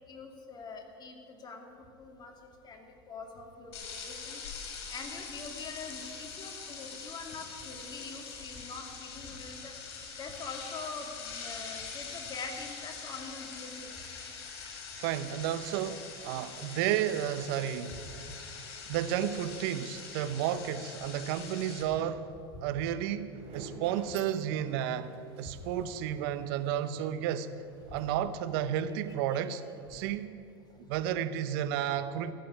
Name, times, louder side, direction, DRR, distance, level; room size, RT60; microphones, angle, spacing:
voice 1, 0.1-1.7 2.0-2.3 2.6-3.7 4.0-9.7 10.2-13.9 17.9-18.0, left 4 dB, 30° left, 3 dB, 2.4 m, -44 dB
sound 1, 3.7-21.8, left 5 dB, 75° left, 3.4 m, -44 dB
voice 2, 15.0-18.0 18.9-22.3 22.6-25.1 25.4-27.5 27.9-29.6 29.9-30.4 30.9-32.3, right 10 dB, 65° right, 12 dB, 0.8 m, -32 dB
sound 2, 22.9-30.2, right 3 dB, 50° right, 3.2 m, -52 dB
14.0 x 7.8 x 9.5 m, 2.6 s
hypercardioid pair, 90°, 13 cm